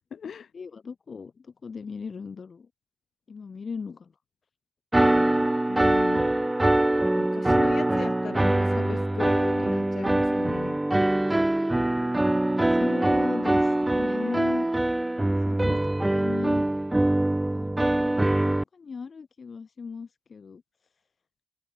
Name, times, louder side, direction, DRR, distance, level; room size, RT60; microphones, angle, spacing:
voice 1, 0.0-0.5 5.7-6.5 7.2-10.8, left 7 dB, 65° left, 2.2 m, -37 dB
voice 2, 0.5-2.7 3.3-4.1 5.0-5.5 12.7-14.7 15.4-15.8 16.1-16.7 17.5-20.6, left 5 dB, 45° left, 1.0 m, -37 dB
sound 1, 4.9-18.6, right 1 dB, 10° right, 0.6 m, -23 dB
open air
wide cardioid pair, 140°, 0 cm